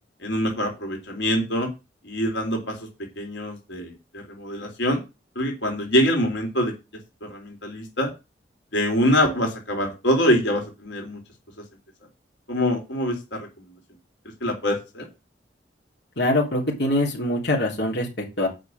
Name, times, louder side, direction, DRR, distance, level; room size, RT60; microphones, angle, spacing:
voice 1, 0.2-1.7 2.0-2.8 3.2-5.0 5.4-6.7 7.3-8.1 8.7-11.2 12.5-13.5 14.4-15.0, equal, 85° left, 1 dB, 3.6 m, -24 dB
voice 2, 16.2-18.5, left 1 dB, 70° left, -2 dB, 3.5 m, -23 dB
8.3 x 6.2 x 7.9 m, 0.26 s
head